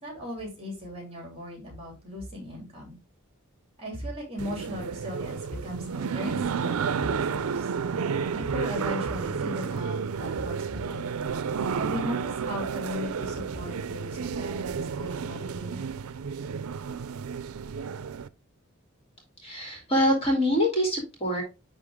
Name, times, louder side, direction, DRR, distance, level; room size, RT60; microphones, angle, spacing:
voice 1, 0.0-3.0 3.8-7.7 8.3-11.1 11.7-15.9, left 1 dB, 25° right, 0 dB, 3.2 m, -37 dB
sound 1, 4.4-18.3, right 6 dB, 80° right, 0.5 m, -31 dB
voice 2, 19.4-21.4, equal, 25° left, 0 dB, 2.9 m, -25 dB
10.5 x 3.8 x 3.6 m, 0.27 s
head